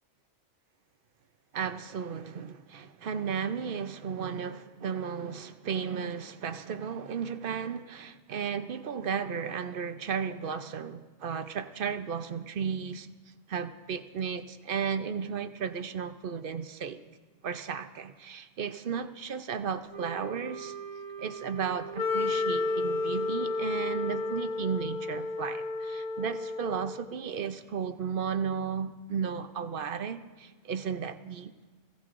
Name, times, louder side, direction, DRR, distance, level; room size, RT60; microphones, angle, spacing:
voice 1, 1.5-13.1 13.5-17.0 17.4-20.7 21.2-31.5, right 7 dB, 50° right, 0.7 m, -34 dB
Wind instrument woodwind instrument, 19.9-24.4, right 6 dB, 70° right, 3.0 m, -42 dB
Wind instrument woodwind instrument 2, 22.0-27.1, left 3 dB, 35° left, 1.0 m, -31 dB
26.5 x 16.5 x 2.5 m
omnidirectional pair, 1.4 m